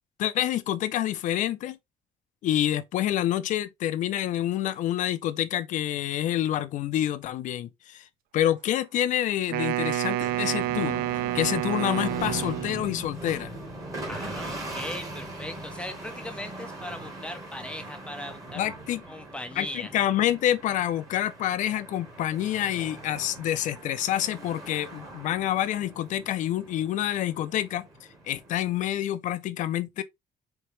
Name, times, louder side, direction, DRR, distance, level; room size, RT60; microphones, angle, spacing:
voice 1, 0.2-1.8 2.4-8.0 8.3-11.0 11.3-13.5 18.5-19.0 19.6-27.9 28.2-30.0, left 12 dB, 60° left, 0.5 m, -27 dB
Wind instrument woodwind instrument, 9.5-13.0, right 15 dB, 90° right, 0.4 m, -29 dB
sound 1, 10.3-28.9, right 1 dB, 25° right, 1.3 m, -40 dB
voice 2, 14.1-18.7 19.1-19.9, left 1 dB, 5° left, 0.5 m, -39 dB
4.4 x 2.9 x 3.1 m
cardioid pair, 165°, 15 cm